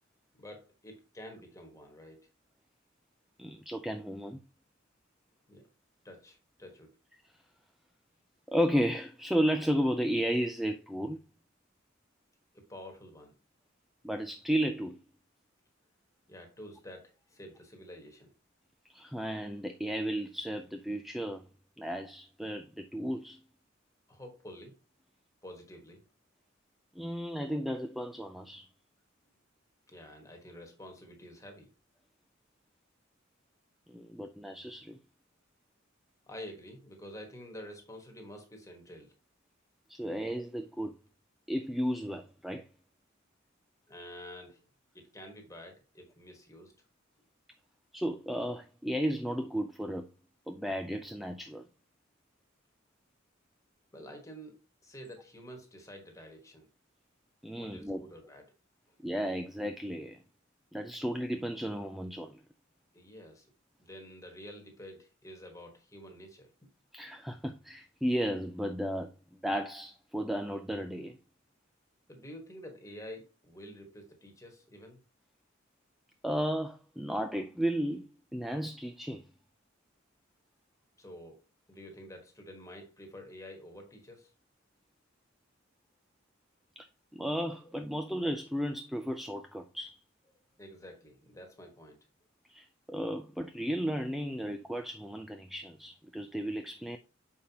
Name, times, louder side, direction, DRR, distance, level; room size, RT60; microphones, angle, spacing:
voice 1, 0.4-2.3 5.5-5.6 6.0-6.9 12.5-13.4 16.3-18.3 24.1-24.8 25.4-26.0 27.1-27.2 29.9-31.7 36.3-39.1 43.9-44.6 44.9-46.7 53.9-56.7 57.6-58.4 62.9-63.5 63.8-66.5 72.1-75.0 81.0-81.4 81.7-84.3 90.6-92.0, equal, 15° left, 1.4 m, -49 dB
voice 2, 3.4-4.4 8.5-11.2 14.0-15.0 18.9-21.4 21.8-23.4 27.0-28.7 33.9-35.0 39.9-40.9 41.5-42.7 47.9-50.1 50.5-51.7 57.4-58.0 59.0-60.2 60.7-62.4 66.9-69.1 69.4-71.2 76.2-79.2 86.8-86.9 87.1-90.0 92.5-97.0, equal, ahead, 0.3 m, -33 dB
6.8 x 5.5 x 2.8 m
head